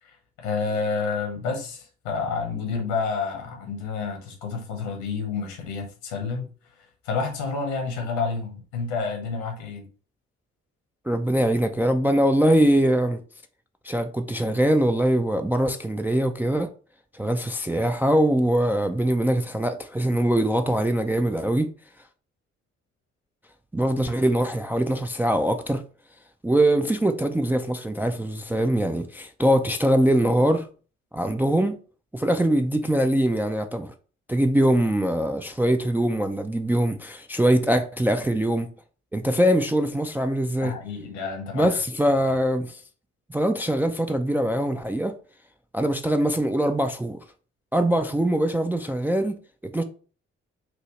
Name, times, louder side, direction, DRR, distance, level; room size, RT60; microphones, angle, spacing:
voice 1, 0.0-6.5 6.8-9.9 40.6-41.8, left 4 dB, 70° left, 1.3 m, -29 dB
voice 2, 11.1-13.2 13.8-16.7 17.1-21.7 23.7-25.8 26.4-30.7 31.1-31.7 32.1-33.9 34.3-38.7 39.1-40.7 41.5-42.8 43.3-45.1 45.7-47.2 47.7-49.3 49.7-49.8, right 1 dB, 5° right, 0.4 m, -22 dB
5.9 x 2.7 x 3.0 m
figure-of-eight pair, 40°, 36 cm